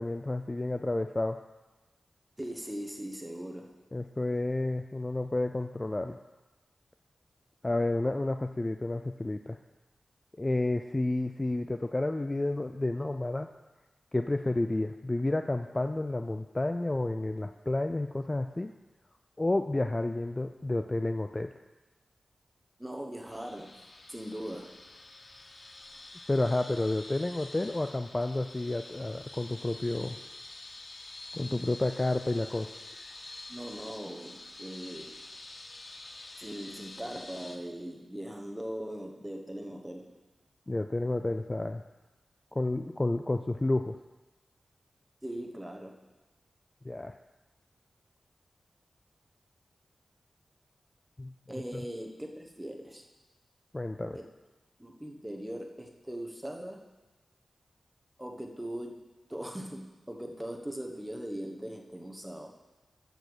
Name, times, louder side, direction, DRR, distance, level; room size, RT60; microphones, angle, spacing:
voice 1, 0.0-1.4 3.9-6.2 7.6-9.6 10.4-13.5 14.1-18.7 19.4-21.5 26.3-30.2 31.3-32.7 40.7-41.8 42.5-44.0 46.8-47.2 51.2-51.3 53.7-54.2, left 2 dB, 25° left, 7 dB, 0.4 m, -30 dB
voice 2, 2.4-3.8 22.8-23.8 24.1-24.8 33.5-35.2 36.3-40.2 45.2-46.0 51.5-53.0 54.2-54.3 54.8-56.8 58.2-62.6, right 1 dB, 10° right, 2 dB, 1.2 m, -40 dB
sound 1, 23.2-37.6, left 2 dB, 45° left, 0.8 m, -47 dB
7.8 x 6.7 x 6.2 m, 1.1 s
wide cardioid pair, 80°, 0 cm